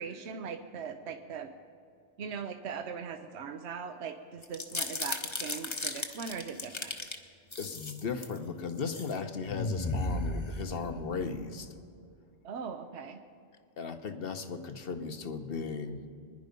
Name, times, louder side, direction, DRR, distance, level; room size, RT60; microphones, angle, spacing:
voice 1, 0.0-1.5 2.2-6.9 12.4-13.2, right 6 dB, 75° right, 7 dB, 1.0 m, -40 dB
sound 1, 4.4-7.2 7.5-8.4 8.8-9.1 9.5-11.1, left 2 dB, 25° left, 0.9 m, -35 dB
voice 2, 7.6-11.7 13.8-16.0, left 5 dB, 60° left, 8 dB, 1.2 m, -36 dB
24.5 x 10.5 x 5.3 m, 2.4 s
omnidirectional pair, 1.2 m